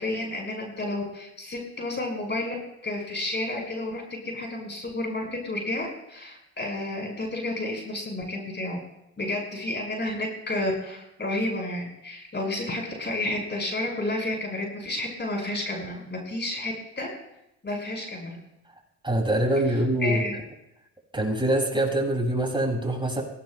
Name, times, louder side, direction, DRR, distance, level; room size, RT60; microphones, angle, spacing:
voice 1, 0.0-2.5 2.8-8.8 9.2-17.1 17.6-18.4 20.0-20.4, left 1 dB, 30° left, 0 dB, 6.0 m, -31 dB
voice 2, 19.0-20.3 21.1-23.2, right 1 dB, 15° right, -2 dB, 7.2 m, -24 dB
24.0 x 17.0 x 2.5 m, 0.85 s
hypercardioid pair, 55°, 35 cm